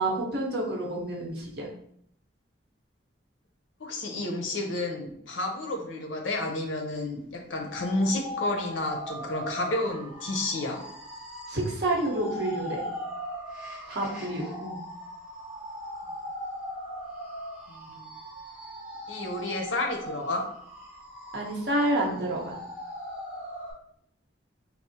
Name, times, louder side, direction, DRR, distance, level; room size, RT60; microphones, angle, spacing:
voice 1, 0.0-1.7 11.5-12.8 13.9-14.8 21.3-22.6, right 1 dB, 60° right, -2 dB, 0.9 m, -29 dB
voice 2, 3.8-10.8 17.7-18.2 19.1-20.4, left 2 dB, 90° left, 3 dB, 0.7 m, -31 dB
sound 1, 7.6-23.7, equal, 5° right, 0.9 m, -39 dB
4.2 x 2.0 x 2.7 m, 0.69 s
head